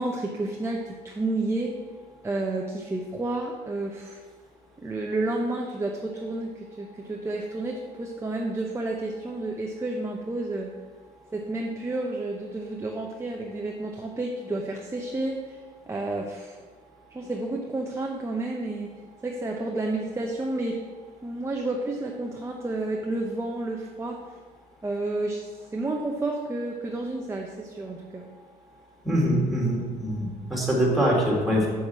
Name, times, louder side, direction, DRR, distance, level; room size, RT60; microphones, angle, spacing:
voice 1, 0.0-1.7 2.2-4.2 4.8-10.7 11.3-15.6 15.9-16.6 17.1-18.9 19.2-20.8 21.2-24.3 24.8-25.5 25.7-28.3, right 2 dB, 15° right, 0 dB, 0.8 m, -30 dB
voice 2, 29.0-31.7, equal, ahead, -4 dB, 3.0 m, -24 dB
7.1 x 6.1 x 6.1 m, 1.5 s
cardioid pair, 110°, 17 cm